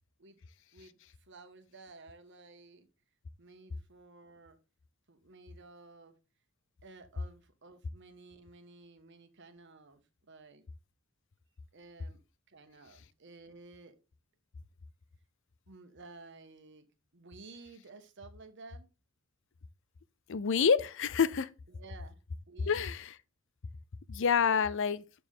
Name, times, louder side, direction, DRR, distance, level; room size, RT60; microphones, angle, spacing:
voice 1, 1.3-2.9 3.4-4.6 5.1-6.1 6.8-10.0 10.3-10.7 11.7-12.2 12.5-13.9 15.7-16.9 17.1-18.9 21.7-22.2 22.5-22.8, right 3 dB, 60° right, 1.2 m, -54 dB
voice 2, 20.3-21.5 22.7-23.1 24.1-25.0, left 6 dB, 60° left, 0.5 m, -27 dB
6.8 x 6.6 x 3.7 m
head